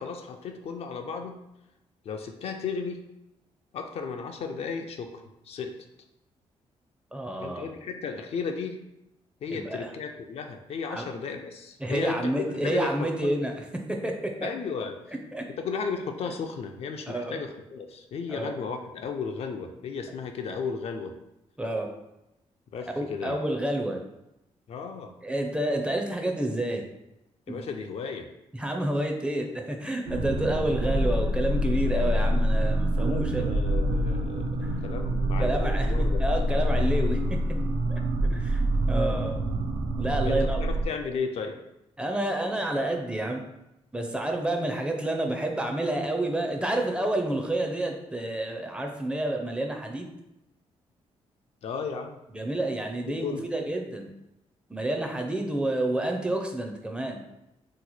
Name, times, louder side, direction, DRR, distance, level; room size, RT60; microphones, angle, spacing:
voice 1, 0.0-1.4 2.0-3.0 3.7-5.7 7.4-8.8 9.4-13.4 14.4-15.0 15.6-21.1 22.7-23.4 24.7-25.1 27.5-28.3 33.0-36.2 40.2-41.6 51.6-52.2 53.1-53.4, left 5 dB, 60° left, 5 dB, 0.4 m, -34 dB
voice 2, 7.1-7.7 9.5-9.9 10.9-11.0 11.8-13.5 14.0-14.1 15.1-15.4 17.1-17.4 18.3-18.5 21.6-21.9 23.0-24.0 25.2-26.8 27.5-27.6 28.5-33.5 35.4-37.4 37.9-38.0 38.3-39.4 40.0-40.7 42.0-43.4 43.9-50.1 52.3-54.1 54.7-57.2, right 1 dB, 10° right, 2 dB, 0.4 m, -29 dB
sound 1, 30.1-40.9, equal, 75° right, 0.4 m, -26 dB
2.9 x 2.1 x 4.0 m, 0.89 s
cardioid pair, 95°, 11 cm